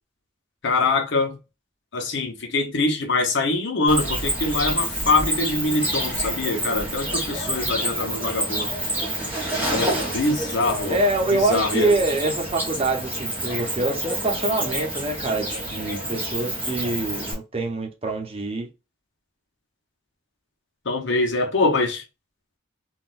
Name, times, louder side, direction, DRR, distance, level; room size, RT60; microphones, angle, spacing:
voice 1, 0.6-1.4 1.9-8.7 9.7-11.0 11.3-11.9 20.8-22.0, left 3 dB, 60° left, 1.0 m, -24 dB
Cricket, 3.9-17.3, right 1 dB, 10° right, 1.5 m, -28 dB
voice 2, 10.9-18.7, right 2 dB, 30° right, 0.8 m, -25 dB
3.8 x 2.5 x 2.5 m
head